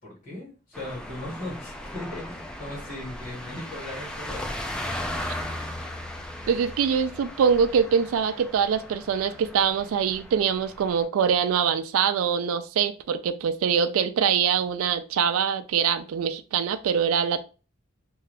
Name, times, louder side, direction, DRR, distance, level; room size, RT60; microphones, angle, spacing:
voice 1, 0.0-5.1, left 1 dB, 40° left, 1.5 m, -38 dB
sound 1, 0.7-11.0, left 1 dB, 5° left, 0.3 m, -37 dB
voice 2, 6.5-17.4, right 7 dB, 75° right, 0.3 m, -24 dB
2.6 x 2.3 x 3.2 m
head